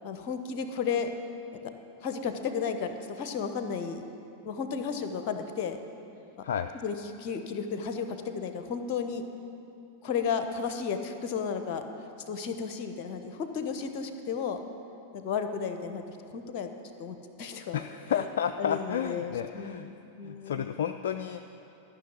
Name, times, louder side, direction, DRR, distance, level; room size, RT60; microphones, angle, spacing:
voice 1, 0.0-1.1 2.0-2.9 3.2-4.0 4.4-5.8 6.8-9.2 10.0-11.8 12.3-14.6 15.1-16.7 17.0-17.8 18.1-18.2 18.6-19.7 20.2-20.6, left 6 dB, 45° left, 7 dB, 1.0 m, -33 dB
voice 2, 17.7-19.9 20.2-21.4, left 8 dB, 60° left, 8 dB, 0.3 m, -31 dB
13.0 x 6.2 x 8.2 m, 2.8 s
figure-of-eight pair, 90°, 0 cm